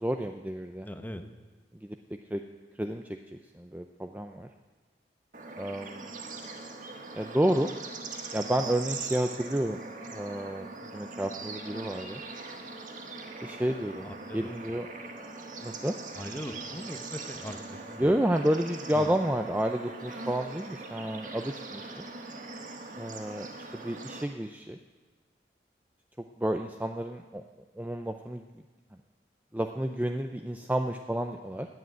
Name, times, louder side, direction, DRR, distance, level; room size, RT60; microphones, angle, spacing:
voice 1, 0.0-0.9 1.8-2.0 2.3-2.4 2.8-3.0 3.3-4.5 5.6-6.1 7.1-7.7 8.3-9.8 10.1-10.7 10.9-12.2 13.4-14.1 14.3-14.9 15.6-15.9 18.0-22.0 23.0-23.5 23.7-24.8 26.4-27.4 27.8-28.4 29.5-31.7, right 1 dB, 10° right, 5 dB, 0.5 m, -30 dB
voice 2, 0.8-1.2 14.0-14.5 16.1-18.1 18.9-19.1, equal, 10° left, 7 dB, 0.9 m, -40 dB
Bird / Insect / Frog, 5.3-24.2, right 3 dB, 45° right, 1.5 m, -41 dB
17.0 x 7.8 x 9.8 m, 1.3 s
head